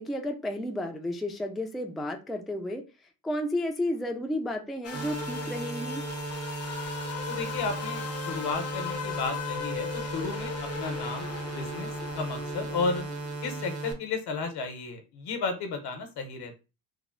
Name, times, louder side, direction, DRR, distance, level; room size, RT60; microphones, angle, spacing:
voice 1, 0.0-2.8 3.2-6.0, left 1 dB, ahead, 3 dB, 0.4 m, -32 dB
sound 1, 4.8-13.6, left 7 dB, 40° left, 0.6 m, -38 dB
sound 2, 4.9-13.9, right 3 dB, 50° right, 0.9 m, -36 dB
voice 2, 7.3-11.9 12.1-13.0 13.4-16.6, left 4 dB, 75° left, 7 dB, 0.9 m, -33 dB
3.3 x 2.0 x 3.7 m, 0.29 s
cardioid pair, 125°, 39 cm